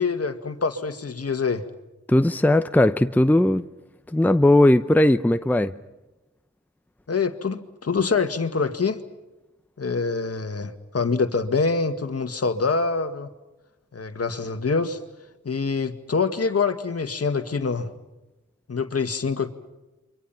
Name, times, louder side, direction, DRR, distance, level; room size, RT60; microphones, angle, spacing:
voice 1, 0.0-1.7 7.1-9.0 9.8-13.3 13.9-15.0 15.5-17.9 18.7-19.5, left 4 dB, 55° left, 1.9 m, -25 dB
voice 2, 2.1-3.6 4.1-5.7, left 1 dB, 5° left, 0.8 m, -18 dB
29.0 x 24.5 x 5.8 m
cardioid pair, 55°, 30 cm